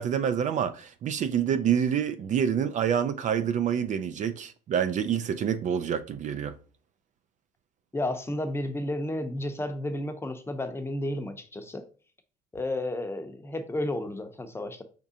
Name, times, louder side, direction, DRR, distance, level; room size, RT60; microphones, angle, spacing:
voice 1, 0.0-6.6, right 8 dB, 45° right, 0.4 m, -27 dB
voice 2, 7.9-11.8 12.5-14.8, left 1 dB, 15° left, 0.6 m, -32 dB
4.7 x 3.6 x 2.7 m
cardioid pair, 110°, 17 cm